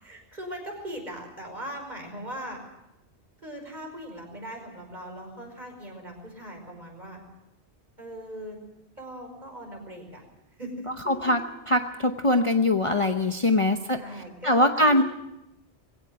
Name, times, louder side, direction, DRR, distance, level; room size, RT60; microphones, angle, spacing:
voice 1, 0.0-2.6 3.4-7.2 8.0-8.6 9.0-10.2 10.6-11.1 13.4-15.0, equal, 40° right, 2 dB, 5.6 m, -40 dB
voice 2, 11.1-11.4 11.7-14.0 14.4-15.0, left 1 dB, 30° left, 5 dB, 0.9 m, -22 dB
21.0 x 17.0 x 7.7 m, 0.89 s
omnidirectional pair, 1.1 m